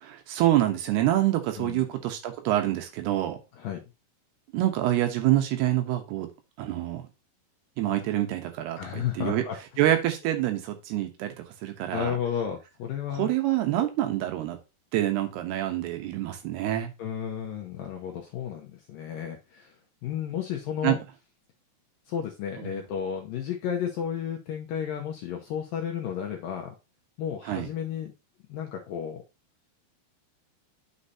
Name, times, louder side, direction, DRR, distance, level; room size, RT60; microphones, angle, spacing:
voice 1, 0.0-3.4 4.5-6.3 6.6-7.0 7.8-9.4 9.8-11.3 11.6-12.1 13.2-14.6 14.9-16.9 20.8-20.9 22.7-22.8 27.5-27.7, right 13 dB, 75° right, 6 dB, 2.9 m, -26 dB
voice 2, 3.5-3.8 8.8-9.6 11.9-13.3 13.8-13.9 17.0-21.0 22.1-26.7 27.2-28.1 28.5-29.2, left 8 dB, 75° left, 1 dB, 2.1 m, -33 dB
9.9 x 6.5 x 2.8 m, 0.27 s
omnidirectional pair, 5.0 m